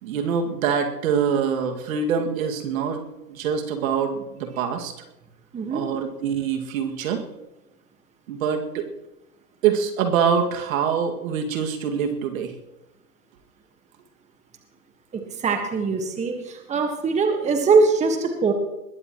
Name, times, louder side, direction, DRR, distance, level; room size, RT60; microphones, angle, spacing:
voice 1, 0.0-3.0 3.3-4.9 5.7-7.2 8.3-8.9 9.6-12.6, right 7 dB, 60° right, 4 dB, 2.3 m, -24 dB
voice 2, 15.1-18.5, right 4 dB, 15° right, 4 dB, 1.6 m, -22 dB
21.0 x 15.0 x 3.1 m, 0.96 s
hypercardioid pair, 125°, 47 cm